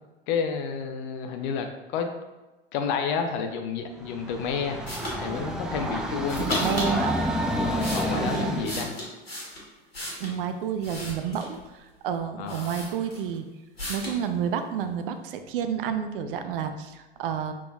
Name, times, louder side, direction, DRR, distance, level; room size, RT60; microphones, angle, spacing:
voice 1, 0.3-2.1 2.7-4.8 5.2-6.9 7.4-8.9 12.4-12.7, left 6 dB, 55° left, 5 dB, 0.7 m, -30 dB
Train, 4.0-8.9, equal, ahead, 0.3 m, -29 dB
sound 1, 4.9-5.2 6.3-6.9 7.5-10.4 10.8-11.6 12.1-12.2 12.5-13.4 13.8-14.2, left 1 dB, 85° left, 1.4 m, -35 dB
voice 2, 6.4-7.2 8.1-8.7 10.2-13.5 13.9-17.5, right 8 dB, 65° right, 8 dB, 0.5 m, -30 dB
5.8 x 3.6 x 2.3 m, 1.1 s
figure-of-eight pair, 80°, 30 cm